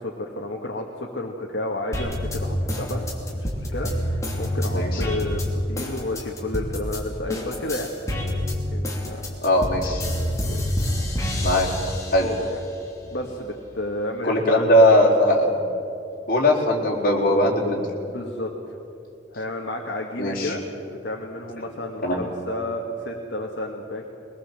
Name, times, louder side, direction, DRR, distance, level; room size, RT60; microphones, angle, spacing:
voice 1, 0.0-7.9 8.7-9.4 10.4-10.6 12.2-12.6 13.0-14.7 18.0-18.8 19.3-20.6 21.0-24.1, left 1 dB, 65° left, 0 dB, 1.8 m, -31 dB
sound 1, 1.9-7.0 7.3-12.5 13.0-13.9, left 1 dB, 15° left, 3.1 m, -27 dB
voice 2, 9.4-10.0 11.4-11.7 12.1-12.3 14.2-15.7 16.3-17.8 20.2-20.6 22.0-22.2, left 1 dB, 50° left, -2 dB, 4.1 m, -19 dB
22.5 x 20.0 x 7.5 m, 2.8 s
head